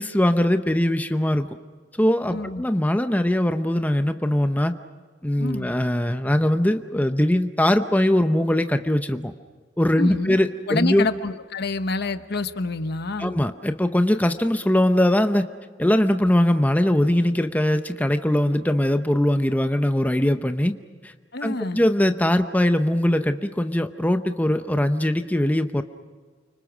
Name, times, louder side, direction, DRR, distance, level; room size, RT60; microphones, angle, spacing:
voice 1, 0.0-1.5 2.0-4.7 5.2-9.3 9.8-11.1 13.2-15.5 15.8-20.7 21.0-21.1 21.4-25.8, left 1 dB, 10° left, 8 dB, 0.8 m, -21 dB
voice 2, 2.3-2.6 5.4-5.7 10.0-10.4 10.7-13.3 21.3-21.8, left 3 dB, 60° left, 10 dB, 1.1 m, -28 dB
29.5 x 25.0 x 6.2 m, 1.5 s
head